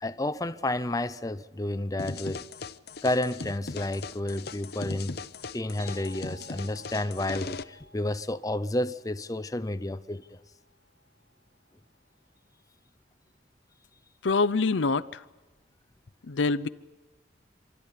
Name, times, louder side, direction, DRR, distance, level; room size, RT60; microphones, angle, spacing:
voice 1, 0.0-2.4 3.0-5.2 5.5-10.4, left 1 dB, 20° left, 0.6 m, -31 dB
sound 1, 2.0-7.6, left 4 dB, 60° left, 0.8 m, -39 dB
sound 2, 5.8-11.3, equal, 80° right, 5.1 m, -54 dB
voice 2, 14.2-15.2 16.3-16.7, left 3 dB, 90° left, 0.7 m, -25 dB
28.0 x 12.5 x 10.0 m
head